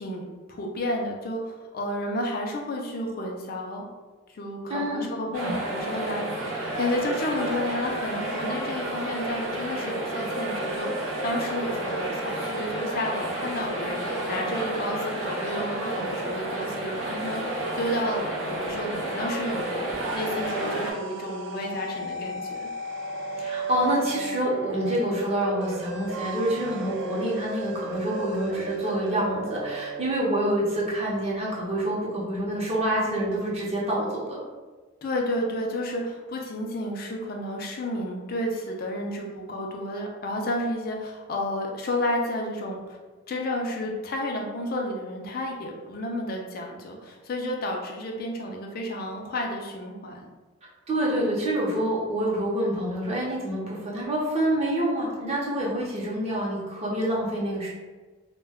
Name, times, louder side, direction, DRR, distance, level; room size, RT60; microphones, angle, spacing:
voice 1, 0.0-3.9 4.3-22.7 35.0-43.0 43.3-50.3, left 1 dB, 45° left, 1 dB, 0.4 m, -31 dB
voice 2, 4.7-5.1 5.4-5.5 5.9-6.1 23.4-34.4 50.9-57.7, right 1 dB, 30° right, -5 dB, 0.7 m, -27 dB
sound 1, 5.3-20.9, right 1 dB, 90° right, 0.8 m, -31 dB
sound 2, 19.7-30.1, right 2 dB, 60° right, 0.3 m, -35 dB
2.2 x 2.2 x 3.4 m, 1.3 s
head